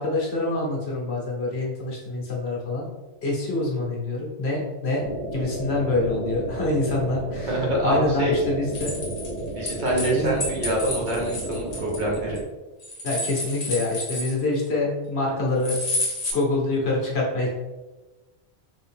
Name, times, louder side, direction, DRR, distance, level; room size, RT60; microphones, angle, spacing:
voice 1, 0.0-2.9 3.2-5.0 5.3-9.0 10.1-10.3 13.0-16.0 16.3-17.5, left 2 dB, 75° left, -3 dB, 1.3 m, -26 dB
sound 1, 5.0-12.4, right 1 dB, 75° right, 0.8 m, -33 dB
voice 2, 7.5-8.3 9.5-12.4, right 1 dB, 50° right, -4 dB, 1.1 m, -25 dB
sound 2, 8.7-10.1 10.4-12.4 12.8-14.7 15.6-16.3, left 2 dB, 40° left, 1.1 m, -30 dB
3.8 x 2.7 x 3.5 m, 1.2 s
omnidirectional pair, 1.1 m